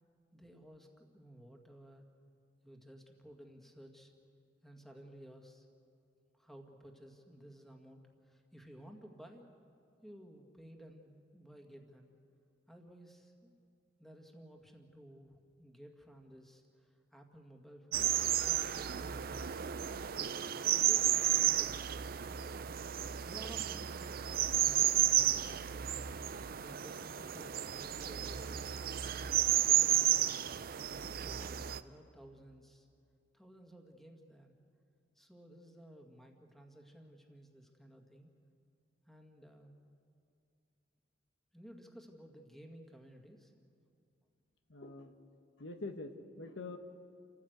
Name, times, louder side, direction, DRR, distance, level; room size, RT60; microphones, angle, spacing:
voice 1, 0.3-2.1 2.6-4.1 4.6-5.7 6.3-9.5 10.0-12.1 12.7-13.5 14.0-18.1 18.4-19.5 20.1-21.8 23.2-25.7 26.5-29.1 29.8-30.4 30.8-32.9 33.3-34.5 35.2-38.3 39.1-39.8 41.5-43.5, right 1 dB, ahead, 2 dB, 1.9 m, -55 dB
sound 1, 17.9-31.8, right 11 dB, 55° right, 0.6 m, -32 dB
voice 2, 44.7-45.1 45.6-46.8, left 3 dB, 85° left, 7 dB, 1.3 m, -44 dB
29.0 x 15.0 x 8.0 m, 2.4 s
head